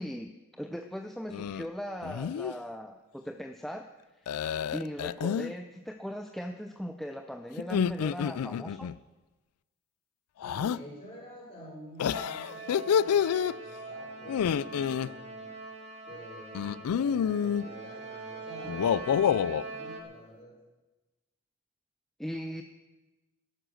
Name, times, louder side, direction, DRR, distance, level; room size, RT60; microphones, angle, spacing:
voice 1, 0.0-4.4 4.7-8.9 22.2-22.6, equal, ahead, 4 dB, 0.5 m, -39 dB
sound 1, 1.3-1.7 2.0-2.5 4.3-5.5 7.6-9.0 10.4-10.8 12.0-13.5 14.3-15.1 16.5-17.6 18.6-19.6, left 8 dB, 75° left, 0.3 m, -28 dB
voice 2, 10.4-15.5 16.0-20.6, equal, 30° left, -4 dB, 5.8 m, -49 dB
sound 2, 12.1-20.0, right 3 dB, 30° right, 1.8 m, -43 dB
13.0 x 11.0 x 6.4 m, 1.1 s
head